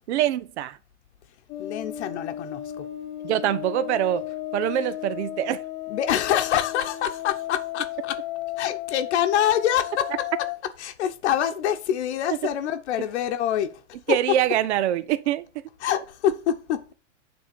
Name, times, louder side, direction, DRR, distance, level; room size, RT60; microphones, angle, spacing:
voice 1, 0.1-0.8 3.2-4.2 4.5-5.6 14.1-15.4, right 12 dB, 65° right, 0.7 m, -24 dB
sound 1, 1.5-10.6, left 14 dB, 25° left, 0.7 m, -34 dB
voice 2, 1.6-2.9 5.9-8.2 8.6-10.3 10.8-13.8 14.1-14.2 15.8-16.9, left 10 dB, 65° left, 0.9 m, -25 dB
8.9 x 3.7 x 6.8 m
supercardioid pair, 150°, 37 cm